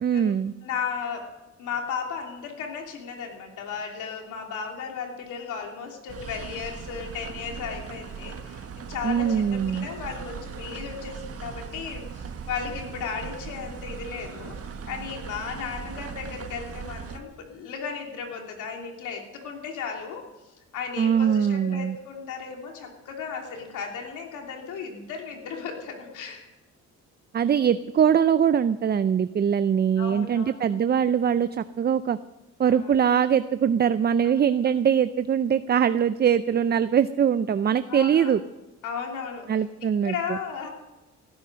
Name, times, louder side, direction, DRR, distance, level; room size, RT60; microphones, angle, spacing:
voice 1, 0.0-0.5 9.0-9.9 21.0-22.0 27.3-32.2 32.6-38.4 39.5-40.4, right 8 dB, 35° right, 13 dB, 0.5 m, -22 dB
voice 2, 0.6-1.3 1.6-8.6 8.9-14.6 14.9-26.5 30.0-30.6 32.7-33.0 37.9-38.3 38.8-39.6 40.0-40.7, left 6 dB, 85° left, 1 dB, 3.1 m, -35 dB
sound 1, 6.1-17.2, right 6 dB, 50° right, 1.4 m, -39 dB
18.0 x 11.0 x 6.3 m, 1.0 s
cardioid pair, 90°, 30 cm